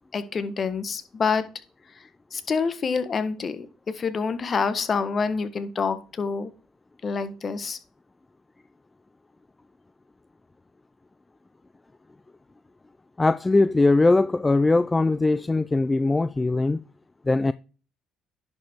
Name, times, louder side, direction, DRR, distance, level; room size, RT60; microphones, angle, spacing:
voice 1, 0.1-1.4 2.3-3.7 3.9-6.5 7.0-7.8, left 5 dB, 40° left, 1.1 m, -27 dB
voice 2, 13.2-16.8 17.3-17.5, left 2 dB, 20° left, 0.3 m, -20 dB
10.5 x 5.1 x 3.5 m
supercardioid pair, 70°, 0 cm